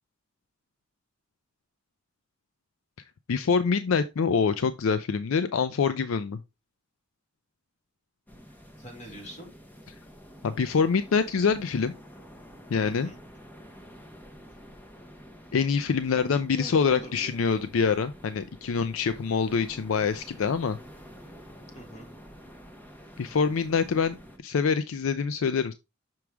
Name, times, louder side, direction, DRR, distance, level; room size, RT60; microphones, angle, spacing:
voice 1, 3.3-6.4 10.4-11.9 12.7-13.1 15.5-20.8 23.2-24.2 24.4-25.7, left 5 dB, 75° left, 0.4 m, -25 dB
sound 1, 8.3-24.4, equal, 10° left, 0.9 m, -49 dB
voice 2, 8.8-9.5 12.8-13.2 16.1-17.4 21.7-22.1, equal, 35° left, 2.4 m, -44 dB
6.1 x 4.7 x 3.4 m
head